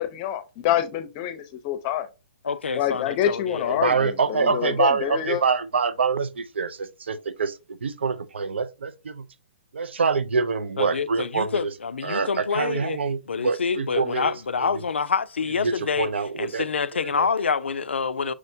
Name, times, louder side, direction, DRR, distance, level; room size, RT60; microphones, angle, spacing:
voice 1, 0.0-2.1 2.7-5.4, left 11 dB, 35° left, 0.6 m, -26 dB
voice 2, 2.4-3.8 10.8-13.0 13.3-16.1 16.4-18.3, left 5 dB, 85° left, 0.3 m, -27 dB
voice 3, 3.8-9.3 9.7-11.7 12.0-14.3 14.6-14.8 15.6-16.7 17.0-17.3, right 5 dB, 80° right, 0.5 m, -25 dB
6.1 x 2.1 x 2.7 m
hypercardioid pair, 130°, 6 cm